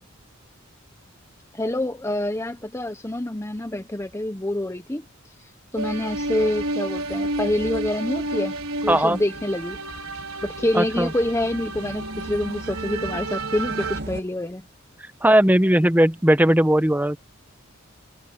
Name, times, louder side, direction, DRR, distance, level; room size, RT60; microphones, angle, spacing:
voice 1, 1.5-5.0 5.7-8.5 8.8-9.8 10.4-14.6, left 1 dB, 15° left, 0.8 m, -26 dB
sound 1, 5.8-14.2, right 1 dB, 50° right, 2.6 m, -39 dB
sound 2, 5.8-14.0, right 2 dB, 90° right, 5.5 m, -31 dB
voice 2, 8.9-9.2 10.7-11.1 15.0-17.2, right 1 dB, 10° right, 1.0 m, -18 dB
head